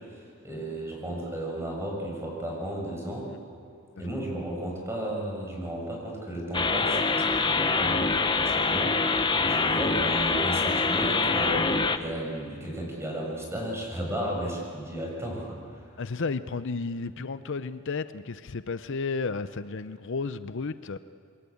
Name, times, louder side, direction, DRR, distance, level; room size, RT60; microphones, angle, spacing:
voice 1, 0.1-3.3 4.0-15.9, right 1 dB, 15° right, -1 dB, 6.7 m, -34 dB
sound 1, 6.5-12.0, left 4 dB, 25° left, 1.0 m, -25 dB
voice 2, 16.0-21.0, left 4 dB, 60° left, 12 dB, 0.7 m, -32 dB
28.0 x 22.0 x 8.6 m, 2.5 s
head